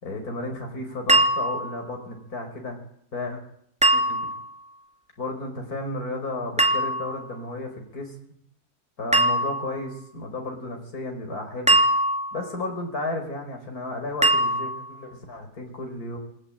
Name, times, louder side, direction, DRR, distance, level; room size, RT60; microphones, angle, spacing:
voice 1, 0.0-2.8 3.1-3.4 3.9-4.3 5.2-8.1 9.0-11.8 12.3-16.2, left 2 dB, 60° left, 2 dB, 5.4 m, -33 dB
sound 1, 1.1-1.8 3.8-4.5 6.6-7.3 9.1-9.8 11.7-12.5 14.2-14.9, right 1 dB, 5° right, 2.8 m, -22 dB
28.5 x 21.0 x 8.9 m, 0.70 s
omnidirectional pair, 1.8 m